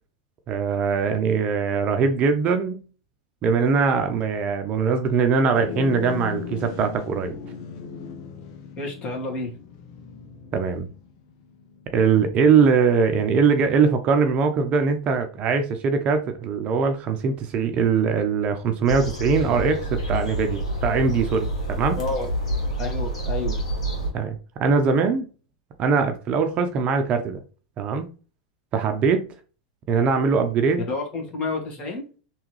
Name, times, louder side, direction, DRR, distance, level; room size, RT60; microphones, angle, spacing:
voice 1, 0.5-2.8 3.4-7.4 10.5-10.9 11.9-22.0 24.1-25.3 25.8-27.4 27.8-28.1 28.7-29.3 29.9-30.8, right 5 dB, 40° right, 6 dB, 0.7 m, -21 dB
sound 1, 5.5-15.1, left 7 dB, 60° left, 0.7 m, -39 dB
voice 2, 8.8-9.5 22.0-22.3 22.8-23.6 30.9-32.1, left 3 dB, 35° left, 1 dB, 1.8 m, -29 dB
sound 2, 18.9-24.1, right 1 dB, 90° left, 1.6 m, -27 dB
3.5 x 3.1 x 3.1 m, 0.36 s
hypercardioid pair, 105°, 3 cm